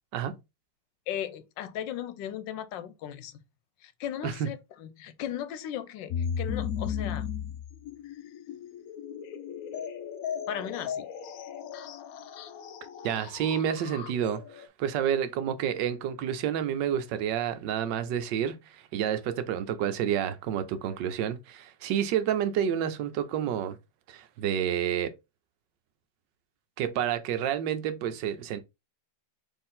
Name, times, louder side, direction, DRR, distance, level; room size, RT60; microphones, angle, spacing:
voice 1, 1.1-3.4 3.8-7.3 10.5-11.1, left 10 dB, 90° left, 1.3 m, -37 dB
sound 1, 6.1-14.7, left 7 dB, 70° left, 0.9 m, -36 dB
voice 2, 13.0-23.8 24.1-25.1 26.8-28.6, right 9 dB, 80° right, 1.3 m, -29 dB
4.4 x 3.3 x 3.6 m
omnidirectional pair, 2.0 m